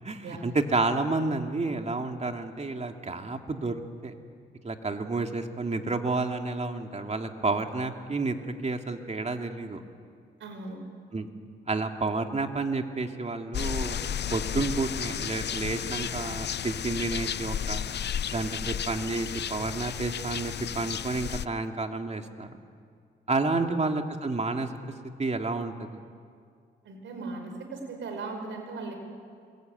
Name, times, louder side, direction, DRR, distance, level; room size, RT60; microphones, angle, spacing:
voice 1, 0.0-4.1 4.6-8.4 8.6-9.8 11.1-11.3 11.7-14.0 14.3-17.8 18.3-22.5 23.3-24.7 25.2-26.0, right 3 dB, 35° right, 4 dB, 2.6 m, -30 dB
voice 2, 10.4-10.8 23.5-23.8 26.9-29.0, right 3 dB, 85° right, 5 dB, 5.2 m, -38 dB
sound 1, 13.5-21.5, left 9 dB, 65° left, 0.7 m, -33 dB
27.5 x 22.0 x 9.5 m, 2.2 s
cardioid pair, 65°, 19 cm